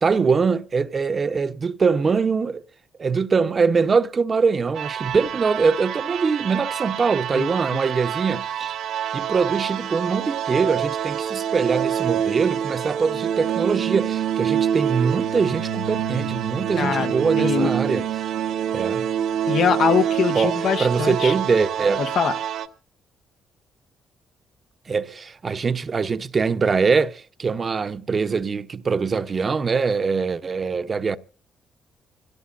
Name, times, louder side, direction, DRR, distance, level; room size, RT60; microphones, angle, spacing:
voice 1, 0.0-2.6 3.0-8.7 9.1-18.1 18.7-19.1 20.3-22.0 24.9-31.2, right 5 dB, 40° right, 0.9 m, -23 dB
sound 1, 4.7-22.7, right 9 dB, 80° right, 1.2 m, -26 dB
voice 2, 7.3-7.8 16.8-18.0 19.5-21.3 22.0-22.4, left 7 dB, 65° left, 1.2 m, -24 dB
25.5 x 17.0 x 2.6 m
cardioid pair, 90°, 0 cm